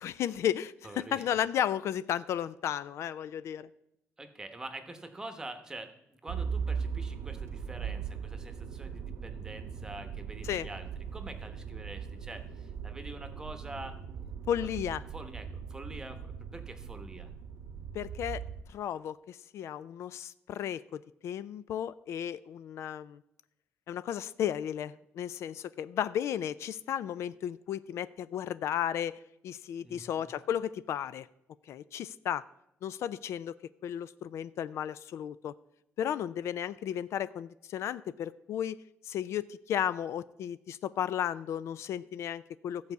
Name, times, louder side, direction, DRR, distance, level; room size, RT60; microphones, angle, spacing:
voice 1, 0.0-3.7 10.4-10.7 14.5-15.0 17.9-18.4 18.7-23.2 23.9-31.3 31.7-32.4 32.8-33.6 33.8-35.5 36.0-38.8 39.0-42.9, left 10 dB, 70° left, 16 dB, 0.3 m, -34 dB
voice 2, 0.8-1.3 4.2-14.0 14.6-14.7 15.1-17.3 29.8-30.3, right 2 dB, 15° right, 8 dB, 1.0 m, -45 dB
Motor vehicle (road), 6.3-18.6, right 6 dB, 75° right, 0.8 m, -39 dB
14.0 x 4.8 x 8.1 m, 0.82 s
cardioid pair, 160°, 5 cm